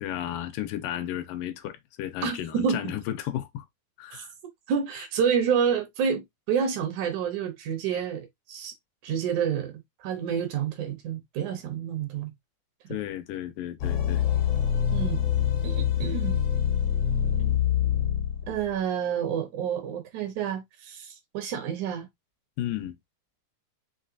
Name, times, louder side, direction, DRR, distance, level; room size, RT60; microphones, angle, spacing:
voice 1, 0.0-3.7 4.0-4.3 12.9-14.2 22.6-23.0, left 12 dB, 85° left, 2.3 m, -33 dB
voice 2, 2.2-2.9 4.1-4.2 4.7-8.7 9.0-9.7 10.0-12.3 14.9-15.2 15.6-16.4 18.5-22.1, right 7 dB, 70° right, 2.1 m, -29 dB
sound 1, 13.8-18.7, left 9 dB, 70° left, 1.5 m, -25 dB
5.7 x 3.1 x 2.6 m
omnidirectional pair, 3.9 m